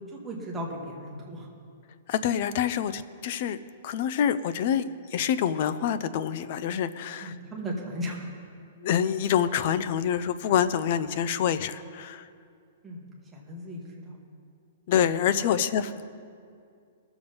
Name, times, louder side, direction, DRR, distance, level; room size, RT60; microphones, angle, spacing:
voice 1, 0.1-1.5 7.2-8.3 12.8-14.2 15.4-15.5, equal, 5° right, -4 dB, 1.4 m, -36 dB
voice 2, 2.1-3.6 3.8-7.3 8.8-12.3 14.9-16.1, left 9 dB, 35° left, 14 dB, 0.4 m, -26 dB
20.0 x 7.0 x 5.3 m, 2.3 s
hypercardioid pair, 175°, 0 cm